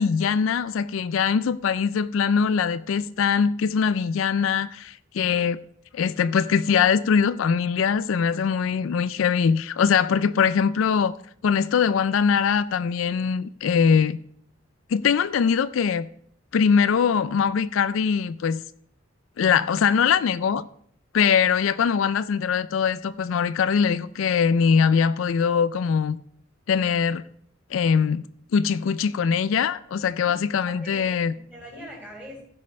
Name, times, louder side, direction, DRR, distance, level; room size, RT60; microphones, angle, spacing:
voice 1, 0.0-5.6 5.9-11.1 11.4-14.2 14.9-16.1 16.5-18.6 19.4-20.6 21.1-26.2 26.7-27.2 27.7-28.2 28.5-31.3, left 6 dB, 70° left, 0.4 m, -22 dB
voice 2, 29.9-30.4 30.7-32.4, equal, 10° right, 3.9 m, -42 dB
15.0 x 5.3 x 5.2 m
head